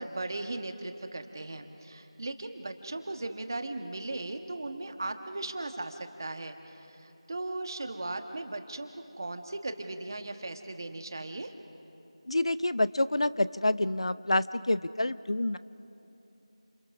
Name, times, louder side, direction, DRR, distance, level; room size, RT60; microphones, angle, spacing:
voice 1, 0.0-8.9 9.2-11.5, right 2 dB, 35° right, 7 dB, 1.4 m, -37 dB
voice 2, 12.3-15.6, left 1 dB, 60° left, 15 dB, 0.6 m, -27 dB
29.5 x 27.5 x 6.2 m, 3.0 s
figure-of-eight pair, 170°, 3 cm